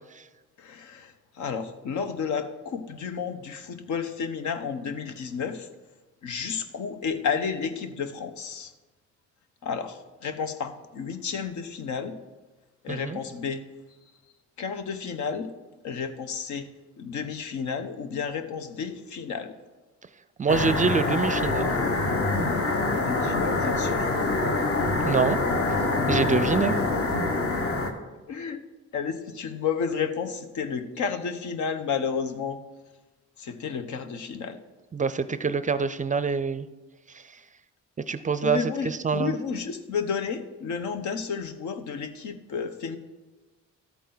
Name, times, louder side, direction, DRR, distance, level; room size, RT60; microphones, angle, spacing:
voice 1, 0.6-5.7 6.2-8.7 9.6-12.1 12.8-13.6 14.6-15.5 15.8-16.7 17.0-19.5 22.9-24.1 28.3-28.6 28.9-32.6 33.4-34.6 38.4-43.0, left 6 dB, 75° left, 9 dB, 1.0 m, -31 dB
voice 2, 12.9-13.2 20.4-21.6 25.1-25.4 26.1-26.8 34.9-36.7 38.1-39.3, right 5 dB, 25° right, 13 dB, 0.4 m, -25 dB
sound 1, 20.5-27.9, left 2 dB, 50° left, 1.4 m, -25 dB
13.0 x 8.4 x 4.0 m, 1.2 s
cardioid pair, 90°, 30 cm